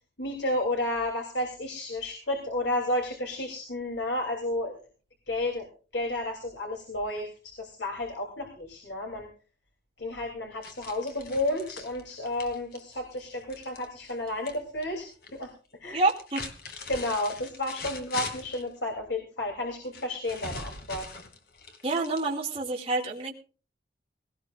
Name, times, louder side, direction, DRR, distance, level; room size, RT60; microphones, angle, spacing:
voice 1, 0.2-4.8 5.3-5.7 5.9-7.3 7.6-9.3 10.0-15.5 15.8-16.0 16.9-21.1, left 1 dB, 80° left, 2 dB, 3.2 m, -32 dB
sound 1, 10.6-14.6 14.8-15.4 16.0-18.7 19.9-22.6, left 4 dB, 60° left, 2.6 m, -41 dB
voice 2, 15.9-16.4 21.8-23.4, right 3 dB, 30° right, -2 dB, 2.3 m, -28 dB
18.5 x 18.0 x 2.5 m, 0.36 s
head